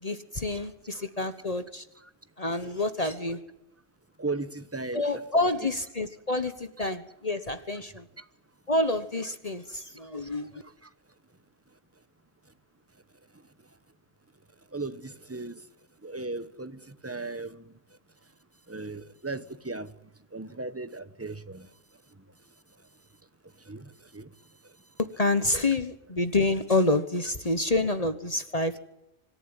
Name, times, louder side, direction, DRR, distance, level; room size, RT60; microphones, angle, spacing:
voice 1, 0.0-1.8 2.4-3.4 4.9-8.0 8.7-10.5 25.0-28.8, left 2 dB, 30° left, 1.2 m, -28 dB
voice 2, 4.2-5.2 14.7-15.5 16.0-17.6 18.7-19.9 20.3-21.7 23.7-23.8 24.1-24.3, right 3 dB, 15° right, 0.9 m, -36 dB
26.0 x 14.5 x 9.8 m
omnidirectional pair, 1.3 m